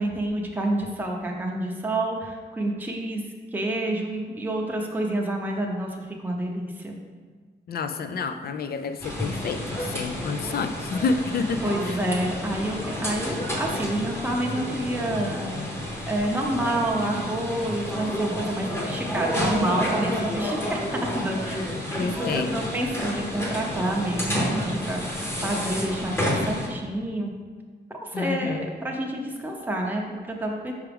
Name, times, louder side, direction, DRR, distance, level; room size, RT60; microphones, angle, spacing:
voice 1, 0.0-3.2 3.5-7.0 11.6-15.7 16.1-21.6 21.9-27.3 28.0-30.7, right 1 dB, 10° right, 0 dB, 0.6 m, -28 dB
voice 2, 7.7-11.7 22.0-22.6 28.1-28.7, left 4 dB, 60° left, 9 dB, 0.4 m, -29 dB
sound 1, 9.0-26.7, left 1 dB, 15° left, 0.9 m, -30 dB
5.7 x 4.8 x 3.5 m, 1.5 s
wide cardioid pair, 160°, 18 cm